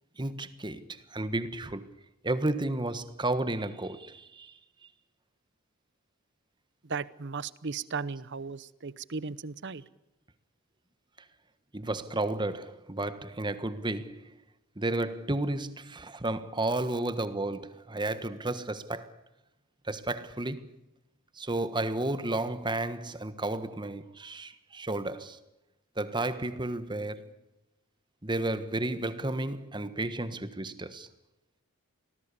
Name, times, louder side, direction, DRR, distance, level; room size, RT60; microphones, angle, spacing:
voice 1, 0.2-1.9 2.2-4.5 11.7-14.4 14.8-19.1 19.8-20.7 21.3-25.4 26.0-27.3 28.2-31.1, right 2 dB, 20° right, 1.3 m, -32 dB
voice 2, 6.8-9.8, right 5 dB, 50° right, 0.9 m, -36 dB
26.0 x 19.0 x 8.5 m
head